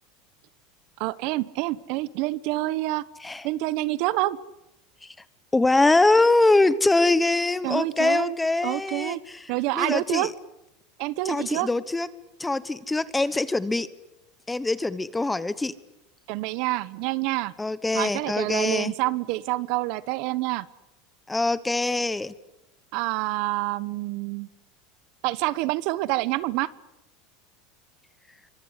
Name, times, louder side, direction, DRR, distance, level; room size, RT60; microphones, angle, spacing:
voice 1, 1.0-3.0 3.4-4.4 7.6-8.4 8.6-9.2 9.5-10.3 11.0-11.7 16.3-17.5 17.9-20.7 22.9-24.5 25.2-26.7, right 18 dB, 60° right, 18 dB, 1.0 m, -27 dB
voice 2, 5.5-9.4 9.7-10.3 11.2-12.1 12.4-13.9 14.5-15.7 17.6-18.9 21.3-22.3, left 2 dB, 10° left, 15 dB, 1.2 m, -23 dB
27.0 x 24.5 x 8.4 m, 0.90 s
supercardioid pair, 135°, 0 cm